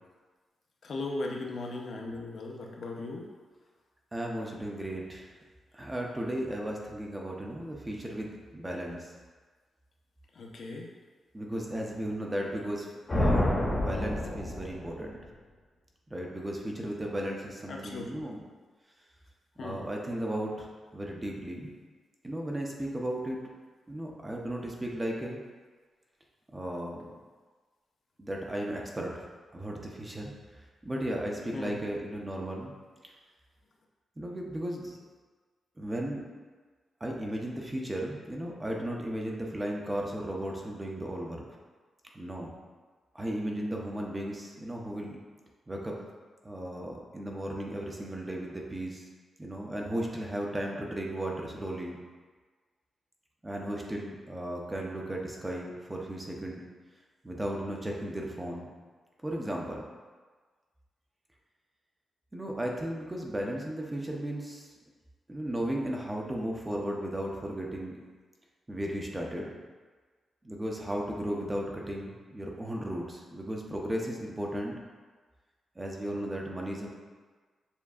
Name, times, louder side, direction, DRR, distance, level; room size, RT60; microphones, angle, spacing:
voice 1, 0.8-3.3 10.4-10.9 17.7-18.0 19.6-19.8 31.5-31.8, left 2 dB, 55° left, 0 dB, 0.6 m, -37 dB
voice 2, 4.1-5.4 5.7-9.1 11.3-15.2 16.1-18.4 19.6-21.7 22.2-23.4 23.9-25.4 26.5-27.1 28.2-29.3 29.5-30.3 30.8-32.7 33.0-33.1 34.2-35.0 35.8-36.2 37.0-41.4 42.1-42.5 43.1-45.2 45.7-45.9 46.4-49.1 49.4-52.0 53.4-56.6 57.2-58.7 59.2-59.8 62.3-64.7 65.3-67.9 68.7-69.5 70.4-74.8 75.8-76.9, right 1 dB, 15° right, -1 dB, 0.5 m, -35 dB
sound 1, 13.1-15.1, left 1 dB, 25° left, 0.8 m, -28 dB
6.8 x 2.5 x 2.4 m, 1.4 s
wide cardioid pair, 145°, 0 cm